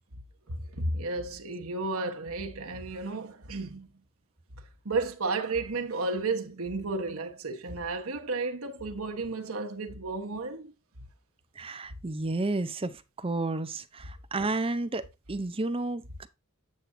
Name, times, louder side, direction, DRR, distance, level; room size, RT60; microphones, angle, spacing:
voice 1, 0.5-3.9 4.8-10.7, right 3 dB, 85° right, 1.2 m, -33 dB
voice 2, 11.6-16.3, right 2 dB, 25° right, 0.6 m, -32 dB
8.4 x 7.6 x 2.7 m
head